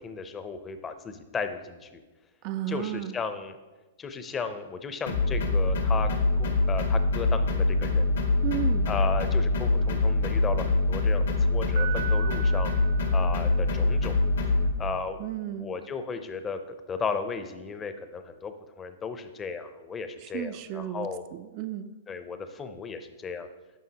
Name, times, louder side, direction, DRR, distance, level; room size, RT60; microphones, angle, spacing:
voice 1, 0.0-1.9 2.7-3.6 4.0-6.1 6.4-8.2 8.9-12.7 13.1-14.2 14.8-15.2 15.5-21.2 22.1-23.5, left 5 dB, 20° left, 9 dB, 0.6 m, -35 dB
voice 2, 2.4-3.1 8.4-8.9 15.2-15.7 20.2-21.9, right 13 dB, 45° right, 10 dB, 0.3 m, -33 dB
sound 1, 5.1-14.7, left 2 dB, 80° left, 1.3 m, -24 dB
Piano, 11.7-13.9, right 11 dB, 65° right, 1.0 m, -38 dB
9.3 x 5.6 x 2.9 m, 1.2 s
hypercardioid pair, 125°, 0 cm